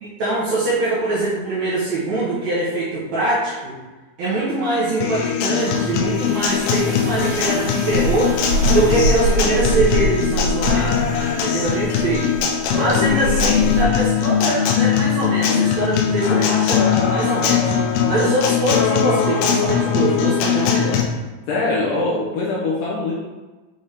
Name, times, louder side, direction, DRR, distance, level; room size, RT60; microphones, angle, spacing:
voice 1, 0.0-3.8 4.2-8.3 8.7-11.0 11.3-12.3 12.7-17.7 18.1-21.0, right 2 dB, 65° right, -8 dB, 1.9 m, -23 dB
Acoustic guitar, 5.0-21.0, left 7 dB, 90° left, 2.7 m, -20 dB
sound 1, 5.6-13.9, right 2 dB, 85° right, 3.0 m, -25 dB
voice 2, 21.5-23.1, left 2 dB, 75° left, -5 dB, 2.1 m, -23 dB
6.8 x 4.0 x 3.5 m, 1.2 s
omnidirectional pair, 4.5 m